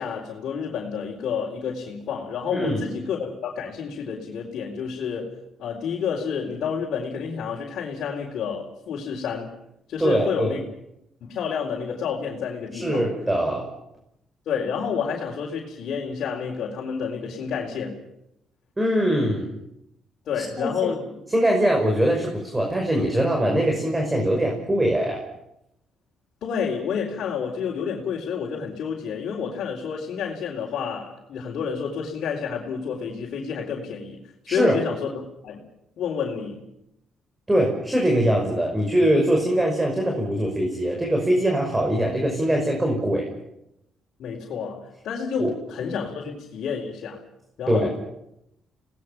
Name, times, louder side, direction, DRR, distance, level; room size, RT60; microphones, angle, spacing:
voice 1, 0.0-5.3 5.6-9.5 9.9-10.6 11.2-13.1 14.5-18.0 20.3-21.0 26.4-34.2 34.4-35.7 36.0-36.7 44.2-47.2 47.6-48.0, left 6 dB, 70° left, -3 dB, 4.3 m, -29 dB
voice 2, 10.0-10.6 12.7-13.7 18.8-19.5 20.6-20.9 21.3-25.2 34.5-34.8 37.5-43.3 45.4-45.5 47.7-47.9, right 1 dB, 15° right, 1 dB, 5.7 m, -22 dB
29.5 x 19.5 x 6.0 m, 0.81 s
cardioid pair, 90°, 0 cm